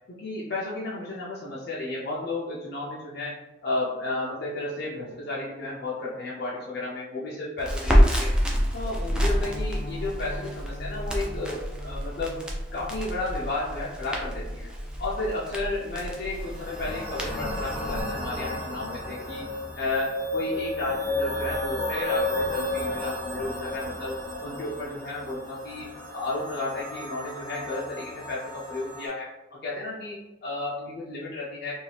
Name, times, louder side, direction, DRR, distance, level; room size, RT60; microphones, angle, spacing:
voice 1, 0.2-3.3 3.6-8.3 8.7-12.4 12.7-14.7 15.0-19.4 19.8-24.1 24.4-25.9 26.1-31.7, left 2 dB, 55° left, -7 dB, 0.5 m, -33 dB
Crackle, 7.6-18.0, equal, 5° right, 0.3 m, -28 dB
Piano, 9.4-20.3 20.5-20.8 21.1-21.2 21.6-21.8 22.1-22.2, left 1 dB, 15° left, 0.8 m, -47 dB
sound 1, 16.3-29.1, left 2 dB, 25° right, 1.3 m, -33 dB
2.7 x 2.3 x 3.2 m, 1.0 s
head